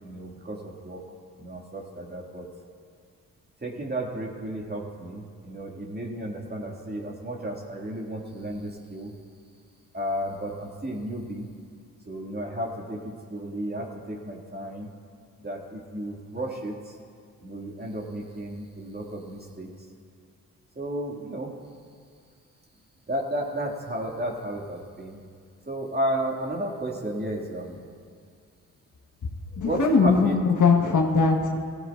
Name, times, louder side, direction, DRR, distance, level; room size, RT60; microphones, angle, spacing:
voice 1, 0.0-1.0 1.4-2.5 3.6-9.2 9.9-11.5 12.1-14.9 15.4-16.9 17.4-19.7 20.8-21.5 23.1-25.2 25.7-27.8 29.6-30.3, right 1 dB, 30° right, 0 dB, 2.3 m, -33 dB
voice 2, 29.6-31.6, left 4 dB, 55° left, 1 dB, 1.6 m, -20 dB
17.5 x 14.5 x 2.6 m, 2.2 s
supercardioid pair, 55°, 35 cm